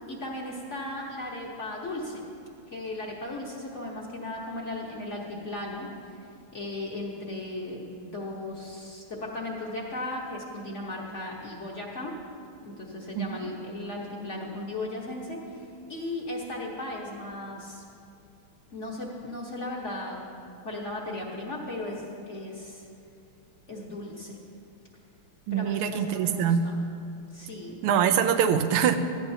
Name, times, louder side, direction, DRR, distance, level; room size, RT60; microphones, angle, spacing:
voice 1, 0.1-2.2 2.7-5.9 6.1-6.2 6.5-12.2 12.6-17.8 18.7-20.3 20.6-22.8 23.7-24.4 25.5-26.8 27.3-27.8, left 1 dB, 40° left, -2 dB, 1.2 m, -36 dB
voice 2, 13.1-13.5 25.5-26.7 27.8-29.0, right 8 dB, 85° right, 8 dB, 1.5 m, -24 dB
16.0 x 12.5 x 2.8 m, 2.5 s
omnidirectional pair, 2.3 m